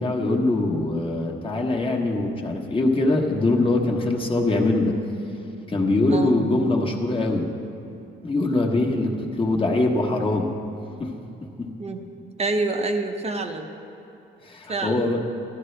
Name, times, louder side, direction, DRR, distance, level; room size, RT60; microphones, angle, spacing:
voice 1, 0.0-5.0 5.7-7.5 8.2-10.5 11.0-11.1 11.6-11.7 14.5-15.2, left 2 dB, 25° left, -1 dB, 1.2 m, -22 dB
voice 2, 12.4-13.7 14.7-15.1, right 3 dB, 30° right, 4 dB, 0.8 m, -27 dB
12.5 x 12.0 x 3.3 m, 2.8 s
cardioid pair, 90°, 20 cm